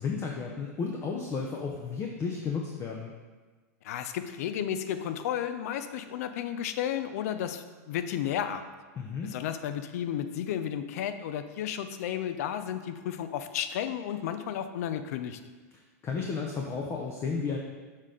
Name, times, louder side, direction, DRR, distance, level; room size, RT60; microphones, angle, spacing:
voice 1, 0.0-3.1 8.9-9.3 15.7-17.6, left 5 dB, 25° left, 0 dB, 0.6 m, -33 dB
voice 2, 3.8-8.7 9.2-15.4, left 9 dB, 70° left, 10 dB, 0.5 m, -33 dB
6.3 x 3.9 x 4.9 m, 1.4 s
supercardioid pair, 135°, 9 cm